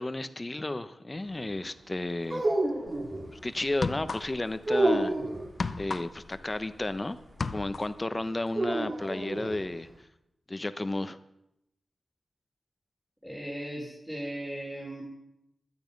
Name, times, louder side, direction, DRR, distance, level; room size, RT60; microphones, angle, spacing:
voice 1, 0.0-2.5 3.3-5.1 5.8-7.2 7.5-9.9 10.5-11.2, left 2 dB, 25° left, 12 dB, 0.9 m, -33 dB
sound 1, 2.2-3.3 4.6-5.5 8.5-9.6, right 1 dB, 40° right, 3.1 m, -28 dB
sound 2, 2.9-3.1 3.7-4.6 4.9-7.0 7.2-8.0, left 4 dB, 55° left, 0.8 m, -34 dB
voice 2, 13.2-15.0, right 1 dB, 5° right, -4 dB, 3.8 m, -37 dB
17.0 x 12.0 x 5.3 m, 0.82 s
wide cardioid pair, 100°, 0 cm